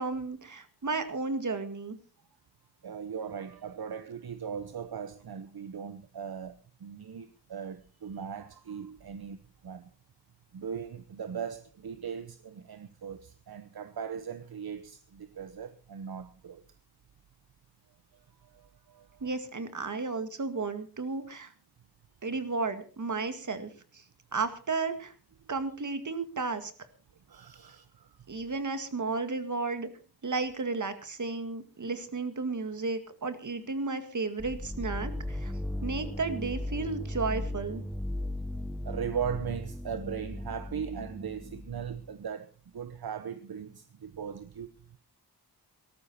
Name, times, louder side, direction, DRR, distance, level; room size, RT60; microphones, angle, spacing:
voice 1, 0.0-2.0 19.2-21.5 22.2-24.0 24.3-25.1 25.5-26.7 28.3-29.9 30.2-35.5 35.8-37.8, right 4 dB, 45° right, 2.0 m, -33 dB
voice 2, 2.8-9.9 10.5-16.6 18.4-19.3 27.3-28.2 38.8-44.7, right 7 dB, 65° right, 1.0 m, -39 dB
sound 1, 34.4-42.1, left 1 dB, ahead, 0.8 m, -37 dB
18.0 x 14.0 x 4.3 m
wide cardioid pair, 135°, 40 cm